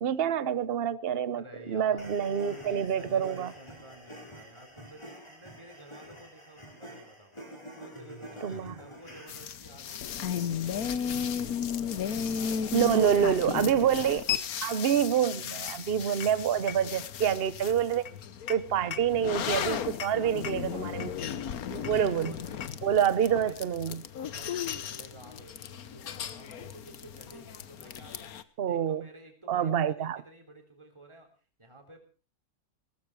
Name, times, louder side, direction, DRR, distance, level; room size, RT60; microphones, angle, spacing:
voice 1, 0.0-3.5 8.4-8.7 12.7-14.2 14.6-18.1 18.5-21.1 21.7-22.3 22.8-24.0 28.6-29.0 29.5-30.2, right 9 dB, 45° right, 1.0 m, -27 dB
voice 2, 1.4-10.1 10.5-10.9 11.4-14.1 20.2-20.3 20.7-21.1 21.8-23.6 24.2-28.4 28.7-31.3 31.6-32.0, right 1 dB, 20° right, 3.7 m, -51 dB
sound 1, 2.0-9.6, equal, 20° left, 5.0 m, -47 dB
sound 2, 9.3-28.4, left 8 dB, 75° left, 1.4 m, -35 dB
18.0 x 14.5 x 4.8 m
omnidirectional pair, 1.6 m